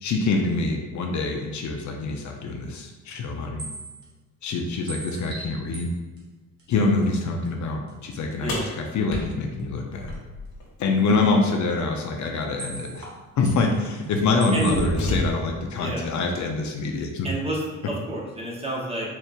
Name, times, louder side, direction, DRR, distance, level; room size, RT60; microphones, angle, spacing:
voice 1, 0.0-3.7 4.4-5.9 6.7-10.1 10.8-13.1 13.4-17.3, left 3 dB, 55° left, 2 dB, 0.6 m, -25 dB
sound 1, 3.6-4.1 4.4-4.5 4.9-5.9 6.2-6.3 6.6-6.7 7.0-7.1 7.4-7.5 7.9-8.0 8.3-8.4 12.6-13.2 13.4-14.1 14.4-14.8, right 2 dB, 50° right, 1.3 m, -38 dB
sound 2, 8.5-10.7 12.5-12.6 13.5-13.7 14.2-15.7, left 1 dB, 75° left, 1.1 m, -30 dB
voice 2, 15.7-16.0 17.2-19.1, right 1 dB, 15° right, -3 dB, 1.1 m, -29 dB
4.4 x 3.2 x 2.4 m, 1.3 s
supercardioid pair, 70°, 35 cm